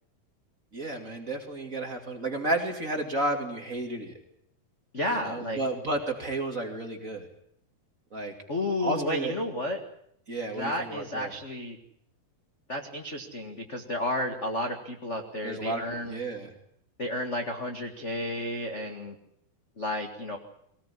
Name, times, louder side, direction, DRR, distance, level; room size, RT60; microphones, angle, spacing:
voice 1, 0.7-4.1 5.1-7.3 8.1-8.3 8.8-9.3 10.3-11.3 15.4-16.5, right 2 dB, 25° right, 3 dB, 2.4 m, -32 dB
voice 2, 4.9-5.6 8.5-9.8 10.5-11.8 12.7-16.2 17.0-19.1 19.8-20.4, left 1 dB, 35° left, 4 dB, 1.1 m, -32 dB
22.0 x 18.5 x 9.8 m, 0.71 s
omnidirectional pair, 4.4 m